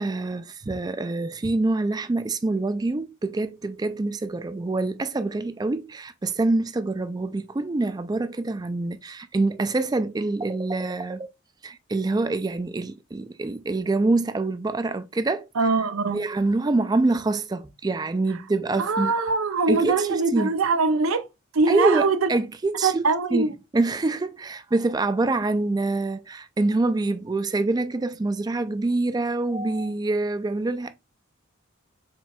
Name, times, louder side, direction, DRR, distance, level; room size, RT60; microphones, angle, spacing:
voice 1, 0.0-11.3 11.6-15.5 16.0-19.1 19.7-20.5 21.7-30.9, right 2 dB, 20° right, 0.3 m, -25 dB
voice 2, 15.6-16.2 18.8-21.3 21.5-22.3 22.8-23.5, right 4 dB, 80° right, 0.5 m, -22 dB
4.4 x 4.2 x 2.3 m
head